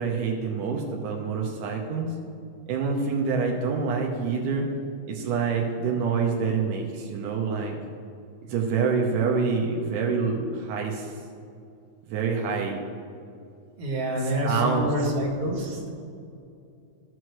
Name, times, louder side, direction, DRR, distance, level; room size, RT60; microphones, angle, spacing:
voice 1, 0.0-2.1 2.7-4.7 5.1-7.8 8.5-11.1 12.1-12.8 14.2-15.1, right 5 dB, 85° right, 0 dB, 2.4 m, -26 dB
voice 2, 13.8-15.9, equal, 50° right, -3 dB, 2.5 m, -27 dB
15.0 x 6.2 x 3.1 m, 2.5 s
omnidirectional pair, 3.6 m